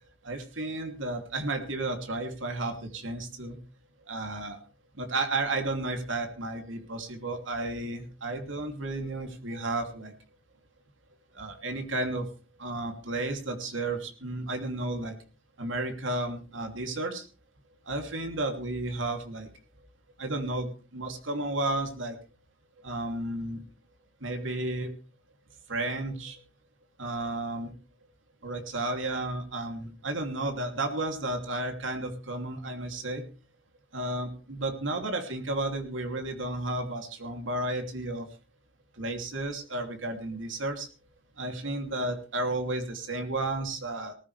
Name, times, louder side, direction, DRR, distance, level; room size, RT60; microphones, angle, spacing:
voice 1, 0.2-3.6 4.0-4.6 5.0-10.1 11.3-12.3 12.6-15.2 15.6-17.3 17.9-19.5 20.2-22.2 22.8-23.6 24.2-24.9 25.7-26.4 27.0-27.7 28.4-33.2 33.9-38.3 38.9-40.9 41.4-44.1, right 2 dB, 70° right, 5 dB, 2.9 m, -32 dB
19.0 x 15.0 x 3.4 m, 0.35 s
head